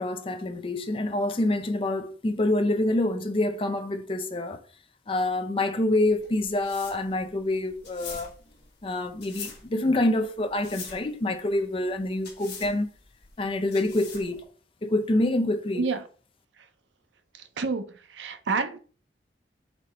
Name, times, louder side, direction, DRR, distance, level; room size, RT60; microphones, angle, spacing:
voice 1, 0.0-4.6 5.1-8.3 8.8-12.9 13.4-14.4 14.8-15.9, left 1 dB, 30° left, 0.4 m, -26 dB
sound 1, 6.0-14.4, left 5 dB, 65° left, 1.2 m, -44 dB
voice 2, 17.3-18.8, right 4 dB, 80° right, 0.6 m, -29 dB
4.1 x 3.1 x 4.2 m
head